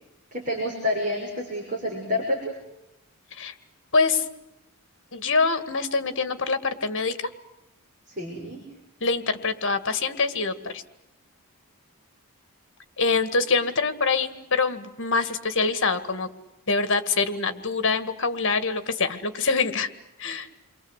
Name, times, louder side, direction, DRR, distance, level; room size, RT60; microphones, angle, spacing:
voice 1, 0.3-2.5 8.1-8.6, left 1 dB, 35° right, -1 dB, 6.4 m, -28 dB
voice 2, 3.9-4.2 5.1-7.3 9.0-10.8 13.0-16.3 16.7-19.9 20.2-20.5, left 4 dB, 60° left, 10 dB, 2.0 m, -25 dB
29.5 x 23.0 x 8.2 m, 0.87 s
head